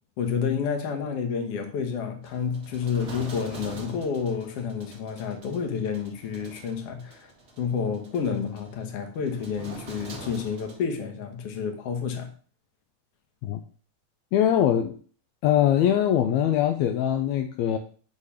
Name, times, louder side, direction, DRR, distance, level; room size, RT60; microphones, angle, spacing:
voice 1, 0.2-7.3 7.6-12.3, left 6 dB, 60° left, 1.9 m, -29 dB
sound 1, 2.2-10.8, right 2 dB, 65° right, 0.6 m, -44 dB
voice 2, 14.3-15.0 15.4-17.8, left 10 dB, 80° left, 1.8 m, -22 dB
8.5 x 3.3 x 5.6 m
omnidirectional pair, 3.3 m